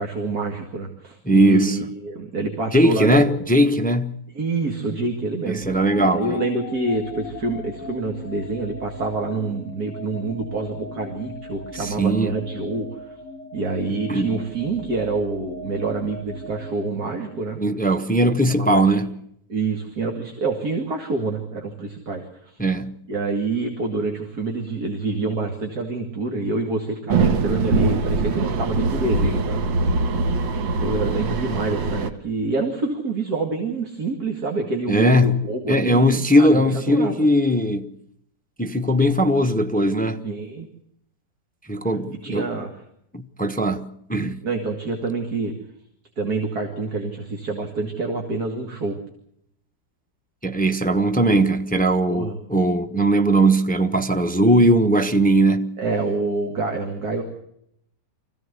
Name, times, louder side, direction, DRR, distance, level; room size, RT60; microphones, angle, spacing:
voice 1, 0.0-3.4 4.3-5.6 6.0-13.2 13.5-17.6 18.5-19.0 19.5-22.6 23.1-29.6 30.8-37.3 40.2-40.7 42.1-42.8 44.4-45.5 46.2-49.0 52.1-52.4 55.8-57.2, right 3 dB, 55° right, 2.7 m, -27 dB
voice 2, 1.3-1.8 2.7-4.2 5.5-6.4 11.8-12.3 14.1-14.4 17.6-19.1 22.6-23.0 34.9-35.4 35.7-37.9 38.6-40.2 41.7-42.5 43.1-44.4 50.4-55.7, right 1 dB, 10° left, 0.5 m, -19 dB
sound 1, 5.6-17.7, left 3 dB, 60° left, 2.9 m, -39 dB
sound 2, 27.1-32.1, right 3 dB, 85° right, 2.0 m, -22 dB
25.0 x 16.0 x 8.2 m
omnidirectional pair, 2.0 m